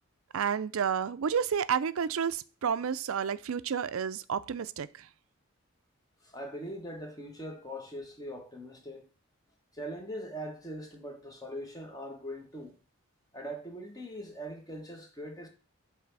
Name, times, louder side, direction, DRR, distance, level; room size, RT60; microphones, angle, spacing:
voice 1, 0.3-5.1, right 7 dB, 75° right, 0.4 m, -30 dB
voice 2, 6.2-9.0 9.7-12.7 13.3-15.5, equal, 15° left, 1.4 m, -41 dB
7.4 x 3.4 x 6.0 m
head